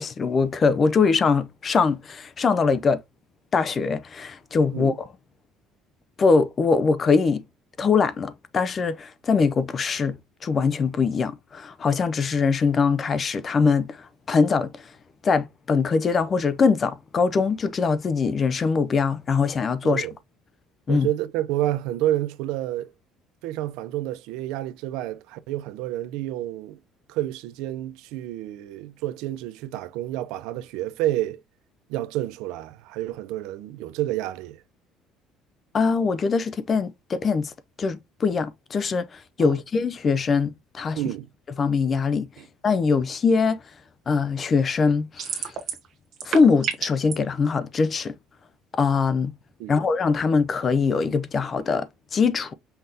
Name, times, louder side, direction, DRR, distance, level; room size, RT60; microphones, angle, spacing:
voice 1, 0.0-3.0 3.5-4.9 6.2-7.4 7.8-10.2 10.4-14.9 15.2-20.1 20.9-21.1 35.7-37.5 37.8-41.0 41.6-42.3 42.6-43.6 44.1-45.5 46.2-48.1 48.7-49.3 49.7-52.5, left 5 dB, 25° left, 0.4 m, -22 dB
voice 2, 19.8-20.1 20.9-22.9 23.4-26.8 27.1-31.4 31.9-34.6 39.4-39.6 41.0-41.3 42.4-42.5 49.6-49.8, right 14 dB, 75° right, 0.5 m, -29 dB
sound 1, 45.2-45.9 46.1-47.1, right 8 dB, 35° right, 1.3 m, -28 dB
5.6 x 3.4 x 2.7 m
cardioid pair, 180°, 0 cm